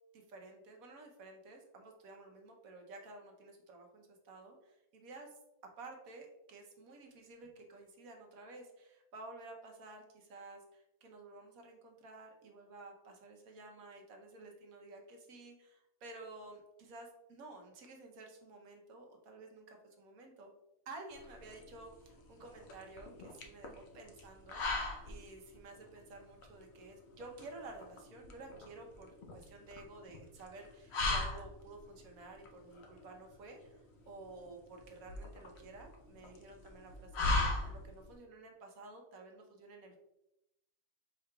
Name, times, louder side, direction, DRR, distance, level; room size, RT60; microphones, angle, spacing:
voice 1, 0.1-5.3 5.8-20.5 20.9-33.8 34.1-40.0, right 2 dB, 65° right, 2 dB, 1.2 m, -52 dB
sound 1, 21.1-38.2, left 2 dB, 60° left, 0.7 m, -40 dB
5.0 x 4.7 x 2.3 m, 0.88 s
omnidirectional pair, 1.7 m